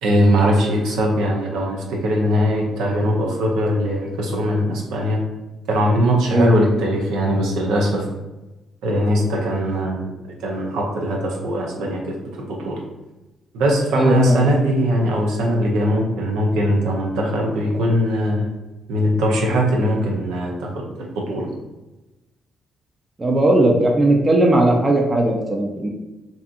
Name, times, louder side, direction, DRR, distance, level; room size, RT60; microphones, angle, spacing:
voice 1, 0.0-5.2 5.7-8.0 8.8-10.1 10.4-12.8 13.5-18.5 18.9-21.5, equal, 80° right, -1 dB, 0.5 m, -20 dB
voice 2, 13.9-14.4 23.2-25.9, right 1 dB, 30° right, 1 dB, 0.5 m, -17 dB
2.7 x 2.5 x 2.4 m, 1.0 s
supercardioid pair, 55°, 0 cm